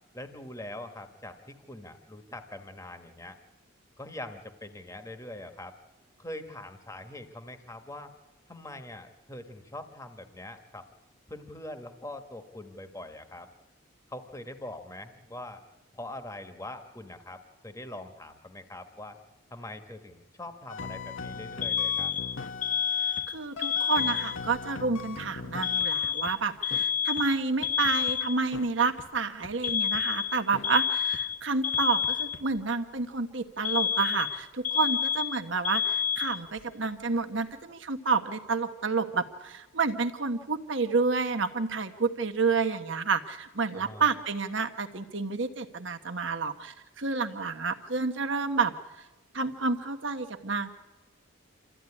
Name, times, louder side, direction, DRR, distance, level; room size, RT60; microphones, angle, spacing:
voice 1, 0.1-3.3 4.0-5.7 6.2-8.1 8.5-10.9 11.3-13.5 14.1-15.6 15.9-19.2 19.5-22.1 43.7-44.1, left 1 dB, 15° left, 7 dB, 1.4 m, -43 dB
sound 1, 20.7-23.3 23.6-26.3 26.7-26.8 27.2-27.3 27.6-28.2 28.5-28.7 29.0-29.1 29.4-30.0 30.5-30.7 31.1-31.2 31.7-32.4, left 4 dB, 70° left, 1.0 m, -40 dB
Alarm, 21.6-24.6 25.6-28.6 29.6-32.6 33.6-36.6, left 8 dB, 35° left, 1.2 m, -29 dB
voice 2, 23.3-48.7 49.3-50.7, right 4 dB, 60° right, 6 dB, 1.3 m, -29 dB
27.5 x 14.0 x 9.8 m, 1.1 s
head